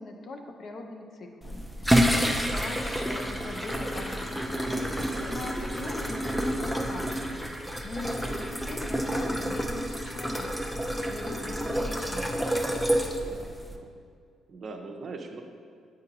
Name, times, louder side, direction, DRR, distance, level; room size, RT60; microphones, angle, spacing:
voice 1, 0.0-12.6, left 2 dB, 50° left, 4 dB, 0.6 m, -41 dB
sound 1, 1.4-13.8, equal, 5° left, 0.5 m, -29 dB
voice 2, 4.9-5.4 13.2-13.9 14.5-15.4, right 3 dB, 45° right, 4 dB, 0.6 m, -42 dB
8.9 x 3.9 x 2.8 m, 2.3 s
cardioid pair, 90°, 0 cm